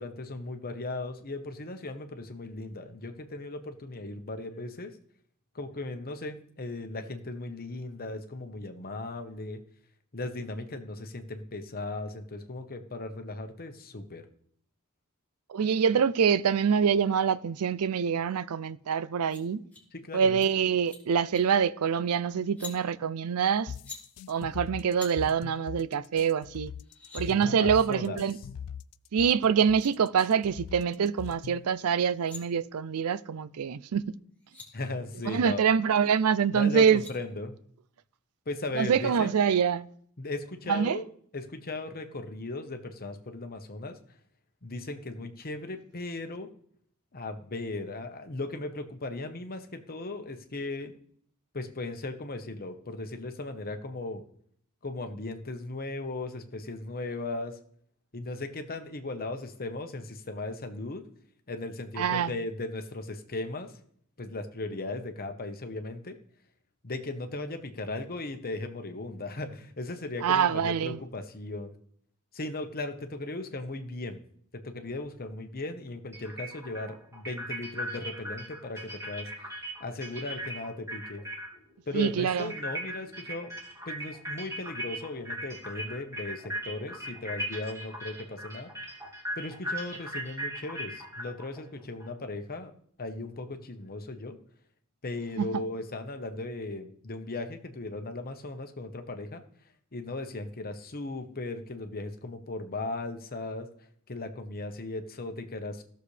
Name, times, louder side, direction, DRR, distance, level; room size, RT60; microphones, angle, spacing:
voice 1, 0.0-4.9 5.5-9.6 10.1-14.2 19.9-20.4 27.3-28.3 34.7-35.6 36.5-37.5 38.5-39.4 40.2-41.1 41.3-44.0 44.6-46.5 47.1-50.9 51.5-54.2 54.8-57.6 58.1-61.0 61.5-63.7 64.2-66.2 66.8-71.8 72.3-74.2 74.6-79.5 79.8-81.2 81.9-83.5 83.9-88.7 89.4-92.7 93.0-94.4 95.0-99.4 99.9-103.7 104.1-105.8, left 2 dB, 45° left, 1.1 m, -37 dB
voice 2, 15.5-19.6 20.1-23.7 24.3-26.7 27.1-28.4 29.1-34.0 35.3-37.0 38.8-39.9 40.7-41.0 62.0-62.3 70.2-71.0 81.9-82.5 95.4-95.5, right 7 dB, 75° right, 0.4 m, -25 dB
sound 1, 19.3-19.4 19.7-19.8 20.2-20.5 20.8-21.0 21.3-21.6 22.4-22.8 23.6-24.0 25.0-25.1 26.4-26.5 26.7-27.2 29.3-29.4 29.6-29.9 32.0-32.4 34.1-34.2 34.3-34.7 36.6-37.1, left 5 dB, 5° left, 2.7 m, -45 dB
sound 2, 23.7-31.7, left 7 dB, 80° left, 0.3 m, -41 dB
sound 3, 76.1-81.6 81.9-92.1, equal, 15° right, 2.4 m, -38 dB
17.0 x 6.8 x 3.3 m
head